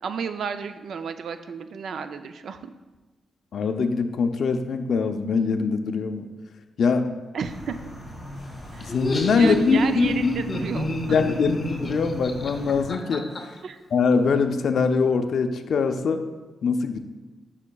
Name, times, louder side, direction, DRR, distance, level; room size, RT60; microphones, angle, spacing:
voice 1, 0.0-2.7 7.3-7.9 8.7-8.9 9.3-11.2 13.6-13.8, right 6 dB, 70° right, 9 dB, 0.4 m, -32 dB
voice 2, 3.5-6.2 6.8-7.1 8.8-9.6 11.1-13.3 13.9-16.3 16.6-17.0, left 5 dB, 60° left, 6 dB, 0.4 m, -23 dB
sound 1, 7.4-12.9, left 1 dB, 20° right, 2.1 m, -38 dB
Laughter, 8.8-13.4, left 2 dB, 30° left, 0.7 m, -25 dB
9.6 x 5.6 x 2.3 m, 1.2 s
wide cardioid pair, 155°, 0 cm